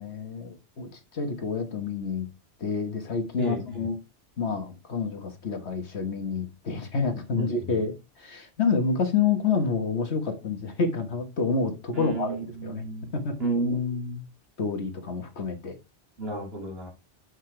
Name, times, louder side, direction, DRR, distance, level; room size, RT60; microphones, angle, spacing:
voice 1, 0.0-2.3 2.6-4.0 4.4-12.4 12.6-12.8 13.1-13.4 14.6-15.8, left 5 dB, 65° left, 1.6 m, -28 dB
voice 2, 3.4-3.8 7.3-7.8 11.9-13.1 13.4-14.2 16.2-16.9, right 1 dB, 55° right, 2.7 m, -31 dB
7.8 x 5.5 x 3.2 m
omnidirectional pair, 1.2 m